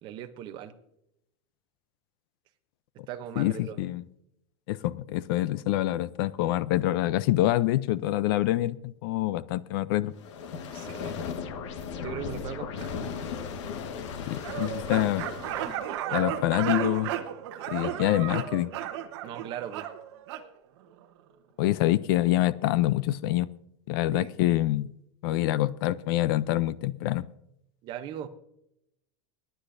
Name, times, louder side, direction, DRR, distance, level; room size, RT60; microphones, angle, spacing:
voice 1, 0.0-0.7 3.1-3.8 10.7-11.1 12.0-13.0 19.2-19.9 24.1-24.3 27.8-28.3, right 10 dB, 30° right, 0.7 m, -39 dB
voice 2, 3.4-4.0 4.7-10.1 14.3-15.2 16.1-17.1 17.7-18.8 21.6-23.5 23.9-24.9 25.2-27.3, left 15 dB, 45° left, 0.4 m, -26 dB
sound 1, 10.2-15.9, left 6 dB, 70° left, 1.4 m, -36 dB
sound 2, 14.4-20.5, right 11 dB, 60° right, 1.1 m, -33 dB
28.5 x 10.0 x 2.6 m
supercardioid pair, 175°, 16 cm